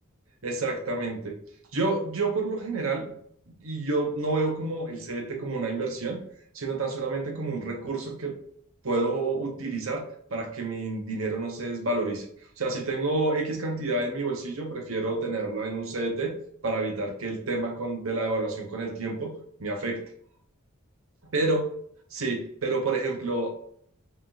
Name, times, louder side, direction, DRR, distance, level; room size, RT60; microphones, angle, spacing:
voice 1, 0.4-1.4 1.7-3.1 3.5-6.2 6.5-8.4 8.8-12.2 12.6-16.3 16.6-20.0 21.3-21.6 22.1-23.5, right 3 dB, 90° right, 3 dB, 1.0 m, -29 dB
5.6 x 3.6 x 2.6 m, 0.64 s
head